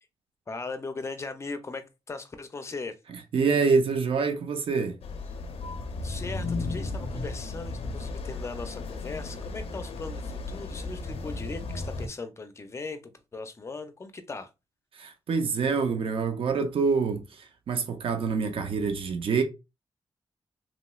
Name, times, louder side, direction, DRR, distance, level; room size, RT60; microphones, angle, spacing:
voice 1, 0.5-3.0 5.9-14.5, left 3 dB, 30° left, 0.5 m, -39 dB
voice 2, 3.3-5.0 14.9-19.4, right 5 dB, 65° right, 0.5 m, -26 dB
sound 1, 5.0-12.1, left 3 dB, 85° left, 0.5 m, -35 dB
3.0 x 3.0 x 2.3 m
wide cardioid pair, 140°, 10 cm